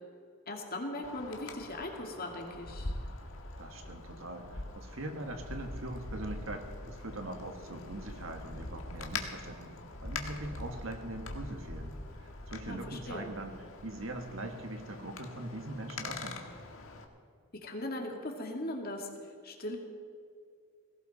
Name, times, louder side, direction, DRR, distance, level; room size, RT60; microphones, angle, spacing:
voice 1, 0.5-2.9 12.7-13.3 17.6-19.1 19.4-19.8, left 1 dB, 45° left, 2 dB, 2.2 m, -39 dB
Wind, 1.0-17.0, left 2 dB, 65° left, 1.7 m, -43 dB
voice 2, 3.6-9.7 10.0-11.9 12.2-13.6 13.8-16.4, right 1 dB, 65° right, 5 dB, 1.8 m, -41 dB
19.0 x 16.5 x 4.2 m, 2.2 s
head